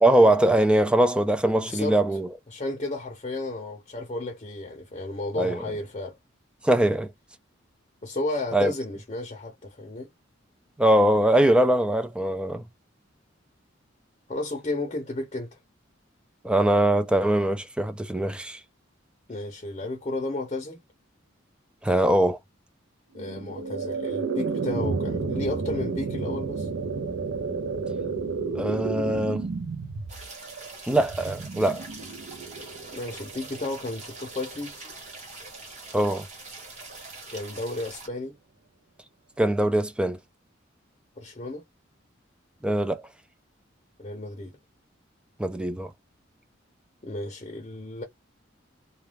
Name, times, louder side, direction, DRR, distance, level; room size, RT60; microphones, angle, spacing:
voice 1, 0.0-2.3 5.4-5.6 6.6-7.1 8.5-8.7 10.8-12.7 16.4-18.6 21.8-22.4 28.5-29.5 30.9-31.8 35.9-36.3 39.4-40.2 42.6-43.0 45.4-45.9, right 1 dB, 5° right, 0.3 m, -22 dB
voice 2, 1.5-2.0 2.5-6.2 8.0-10.1 14.3-15.6 19.3-20.8 23.1-26.7 32.9-34.8 37.3-38.4 41.2-41.6 44.0-44.5 47.0-48.0, left 2 dB, 30° left, 0.6 m, -33 dB
sound 1, 23.2-34.3, right 4 dB, 75° right, 0.5 m, -32 dB
sound 2, 30.1-38.1, right 3 dB, 35° right, 1.2 m, -43 dB
2.3 x 2.3 x 3.2 m
head